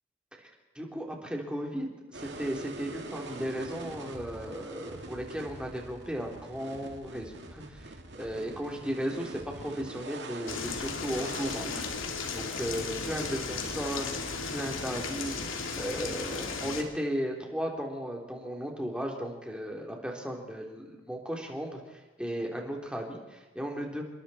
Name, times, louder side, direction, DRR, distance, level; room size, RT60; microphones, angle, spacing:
voice 1, 0.8-11.8 12.3-15.4 15.7-24.0, equal, 5° right, 0 dB, 3.5 m, -35 dB
sound 1, 2.1-13.4, right 2 dB, 60° right, 2.5 m, -44 dB
sound 2, 10.5-16.8, left 4 dB, 85° left, 2.8 m, -35 dB
27.5 x 22.0 x 4.4 m, 1.2 s
head